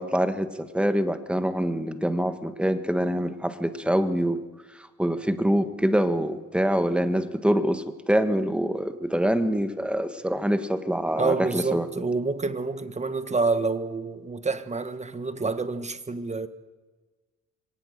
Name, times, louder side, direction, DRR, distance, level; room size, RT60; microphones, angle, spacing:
voice 1, 0.0-4.4 5.0-11.9, equal, 5° right, 1.6 m, -25 dB
voice 2, 11.1-16.5, right 4 dB, 20° right, 1.5 m, -28 dB
22.5 x 18.5 x 6.6 m
cardioid pair, 90°, 30 cm